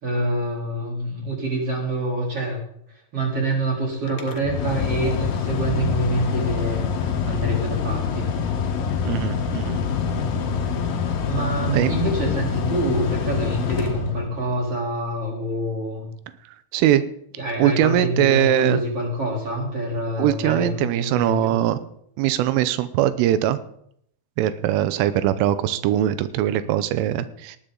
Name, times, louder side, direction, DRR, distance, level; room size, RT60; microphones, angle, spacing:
voice 1, 0.0-2.6 2.9-6.9 7.2-8.3 11.2-16.1 17.4-21.5, right 1 dB, 30° right, -2 dB, 3.9 m, -26 dB
Mechanical fan, 4.1-14.6, left 6 dB, 65° left, 2.4 m, -25 dB
voice 2, 9.0-9.8 11.7-11.9 16.7-17.0 17.6-18.8 20.2-21.8 22.2-23.6 24.4-27.6, right 12 dB, 90° right, 12 dB, 3.4 m, -21 dB
19.5 x 11.0 x 3.9 m, 0.69 s
omnidirectional pair, 5.6 m